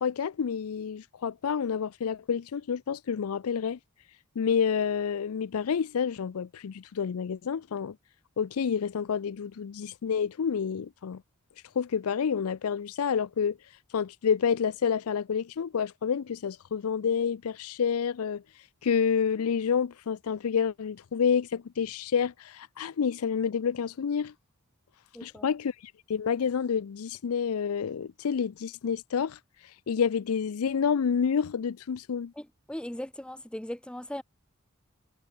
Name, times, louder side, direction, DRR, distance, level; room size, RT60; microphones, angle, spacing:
voice 1, 0.0-3.8 4.4-8.0 8.4-11.2 11.8-13.6 13.9-18.4 18.8-24.3 25.2-25.7 26.1-29.4 29.9-32.3, left 7 dB, 80° left, 0.5 m, -28 dB
voice 2, 25.1-25.5 32.4-34.2, left 1 dB, 5° left, 0.7 m, -38 dB
head